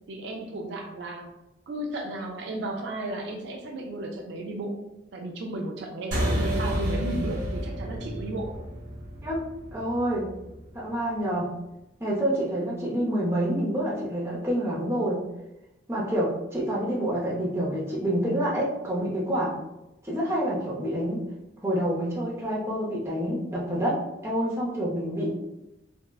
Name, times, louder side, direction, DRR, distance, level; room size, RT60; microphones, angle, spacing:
voice 1, 0.1-1.3 1.7-4.8 5.1-8.6, right 1 dB, 65° right, 1 dB, 0.4 m, -34 dB
sound 1, 6.1-10.9, equal, 40° right, 1.0 m, -30 dB
voice 2, 9.7-10.3 10.7-11.5 12.0-15.2 15.9-19.5 20.0-21.2 21.6-24.0 24.2-25.3, equal, 15° right, -5 dB, 0.5 m, -27 dB
3.5 x 2.0 x 2.3 m, 0.94 s
head